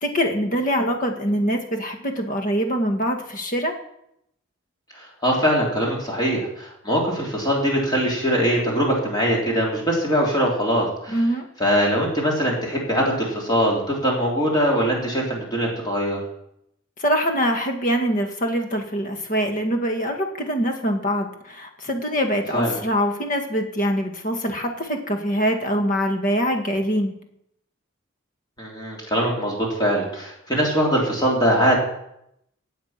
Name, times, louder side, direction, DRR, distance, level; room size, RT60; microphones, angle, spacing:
voice 1, 0.0-3.7 11.1-11.5 17.0-27.1, equal, 40° left, 4 dB, 2.0 m, -24 dB
voice 2, 4.9-11.2 11.6-16.2 22.5-22.8 28.6-31.8, equal, 20° left, -2 dB, 3.6 m, -22 dB
16.0 x 8.7 x 5.9 m, 0.78 s
head